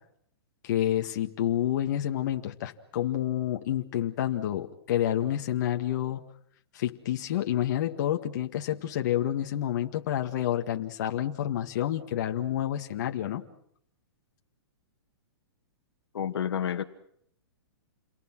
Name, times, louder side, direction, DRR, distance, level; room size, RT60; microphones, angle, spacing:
voice 1, 0.6-6.2 6.7-13.4, left 11 dB, 45° left, 4 dB, 1.8 m, -29 dB
voice 2, 16.1-16.8, left 9 dB, 75° left, 9 dB, 1.8 m, -29 dB
29.0 x 23.0 x 6.2 m, 0.69 s
hypercardioid pair, 165°, 13 cm